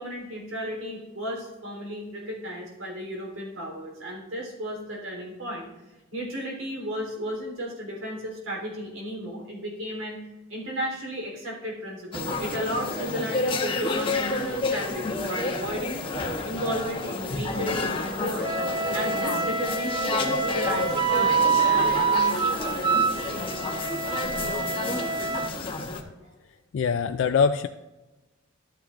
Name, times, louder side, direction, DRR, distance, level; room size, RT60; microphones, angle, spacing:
voice 1, 0.0-5.7 6.1-10.2 10.5-16.0 16.4-18.6 18.9-23.4, equal, 90° right, -2 dB, 3.5 m, -34 dB
sound 1, 12.1-26.0, left 2 dB, 25° left, 0.9 m, -30 dB
Wind instrument woodwind instrument, 18.4-25.5, right 5 dB, 25° right, 0.4 m, -26 dB
voice 2, 26.7-27.7, left 6 dB, 65° left, 9 dB, 0.3 m, -23 dB
12.5 x 9.1 x 2.5 m, 1.1 s
head